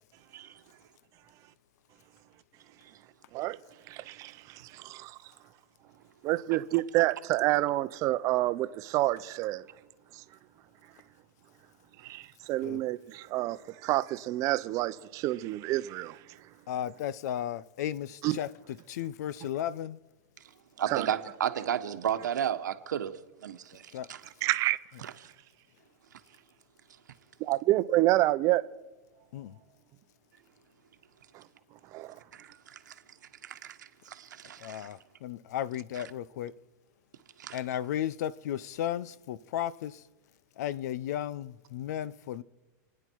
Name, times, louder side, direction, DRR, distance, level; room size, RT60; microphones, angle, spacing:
voice 1, 3.9-5.2 6.2-9.7 10.1-10.2 12.0-16.2 18.2-18.4 20.9-21.1 24.4-24.8 27.4-28.6 31.9-32.2, right 17 dB, 35° right, 0.7 m, -28 dB
voice 2, 16.7-20.0 23.9-24.1 29.3-29.6 34.6-36.5 37.5-40.0 40.6-42.4, left 11 dB, 65° left, 0.7 m, -34 dB
voice 3, 20.8-23.1 23.4-24.2 25.0-25.1 32.3-32.9 33.4-34.9 35.9-36.0 37.4-37.6, right 9 dB, 90° right, 1.4 m, -34 dB
30.0 x 10.0 x 4.7 m
hypercardioid pair, 140°, 10 cm